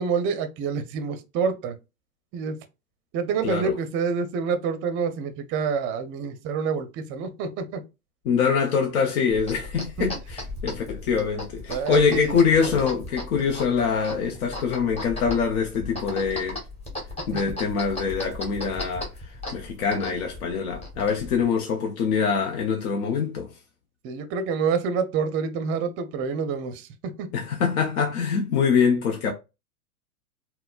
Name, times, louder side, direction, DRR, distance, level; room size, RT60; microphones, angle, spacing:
voice 1, 0.0-1.7 2.3-2.6 3.1-7.8 10.0-10.1 11.7-12.7 24.0-27.3, right 5 dB, 30° right, 0.5 m, -27 dB
voice 2, 8.3-16.6 17.3-19.1 19.5-23.5 27.3-29.3, left 6 dB, 70° left, 0.7 m, -24 dB
sound 1, 9.3-21.4, left 2 dB, 15° left, 1.0 m, -37 dB
4.0 x 2.1 x 2.3 m
hypercardioid pair, 110°, 44 cm